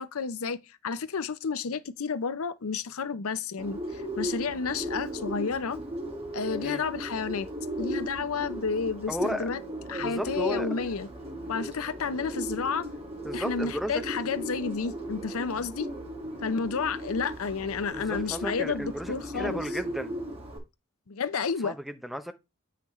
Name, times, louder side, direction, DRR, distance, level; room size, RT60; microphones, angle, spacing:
voice 1, 0.0-5.8 6.3-7.5 7.8-9.6 9.9-11.1 11.5-12.9 13.3-15.9 16.4-19.6 21.1-21.8, left 5 dB, 70° left, 0.6 m, -31 dB
Bird, 3.6-20.6, equal, 25° right, 1.8 m, -36 dB
voice 2, 9.1-9.5 10.0-10.7 13.2-14.0 15.6-15.7 17.9-20.1 21.6-22.3, equal, ahead, 0.6 m, -34 dB
8.3 x 5.7 x 3.1 m
head